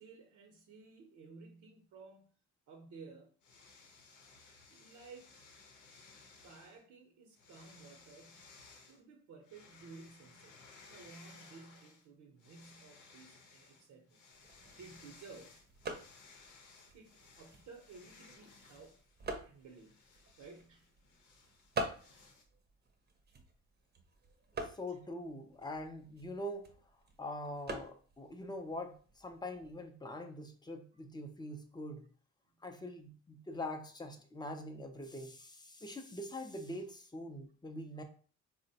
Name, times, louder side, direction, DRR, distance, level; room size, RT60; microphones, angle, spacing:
voice 1, 0.0-2.3 2.7-3.3 4.7-5.4 6.4-8.5 8.9-10.6 10.9-14.2 14.8-15.6 16.9-19.0 19.4-20.0 20.4-20.9 21.9-22.3 24.9-25.0 28.2-28.3 32.6-32.7, right 4 dB, 75° right, 0.7 m, -55 dB
sound 1, 3.4-6.8 7.3-9.0 9.4-12.1 12.4-22.4, left 4 dB, 85° left, 0.8 m, -60 dB
sound 2, 14.3-29.9, right 3 dB, 35° right, 0.6 m, -47 dB
voice 2, 24.6-26.7 27.2-32.1 32.6-38.0, left 1 dB, 15° left, 0.4 m, -44 dB
3.9 x 2.1 x 2.7 m
cardioid pair, 90°, 30 cm